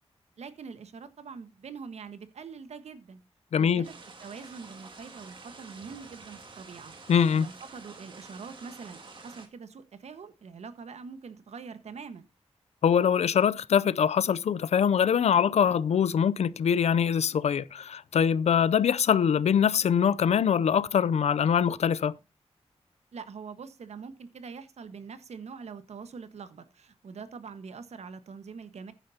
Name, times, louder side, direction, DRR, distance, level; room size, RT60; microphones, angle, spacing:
voice 1, 0.4-3.2 3.6-3.9 4.2-6.9 7.3-12.3 23.1-28.9, right 5 dB, 85° right, 1.3 m, -44 dB
voice 2, 3.5-3.9 7.1-7.5 12.8-22.1, left 7 dB, 75° left, 0.5 m, -23 dB
sound 1, 3.8-9.5, right 3 dB, 50° right, 2.2 m, -48 dB
15.5 x 10.0 x 2.8 m
wide cardioid pair, 140°, 11 cm